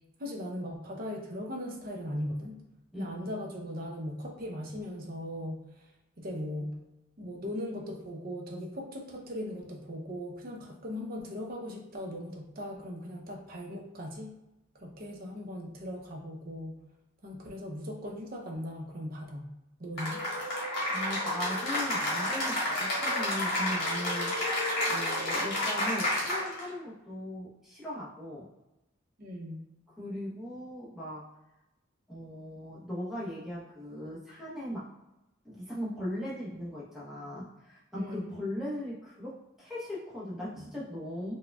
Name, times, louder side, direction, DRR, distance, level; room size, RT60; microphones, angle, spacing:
voice 1, 0.2-2.6 3.0-5.6 6.2-6.8 7.2-14.3 14.8-16.8 17.2-19.4 19.8-20.2 29.2-29.6 37.9-38.3 40.5-40.7, left 1 dB, 45° right, -1 dB, 0.6 m, -38 dB
voice 2, 2.9-3.3 20.9-24.5 24.8-28.5 30.0-31.3 32.1-34.9 35.4-41.4, left 1 dB, ahead, -8 dB, 0.8 m, -38 dB
Cheering / Applause, 20.0-26.7, left 1 dB, 50° left, 1.3 m, -30 dB
4.7 x 2.2 x 2.3 m, 0.95 s
head